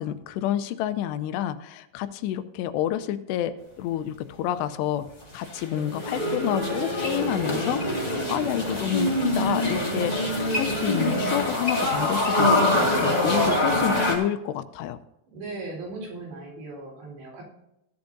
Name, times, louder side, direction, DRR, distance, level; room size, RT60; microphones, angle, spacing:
voice 1, 0.0-5.1 5.3-15.0, left 11 dB, 90° left, 11 dB, 2.8 m, -29 dB
sound 1, 5.2-14.1, left 1 dB, 30° left, 0.6 m, -24 dB
voice 2, 15.3-17.4, right 3 dB, 90° right, -2 dB, 6.2 m, -37 dB
16.0 x 10.5 x 2.7 m, 0.85 s
omnidirectional pair, 4.8 m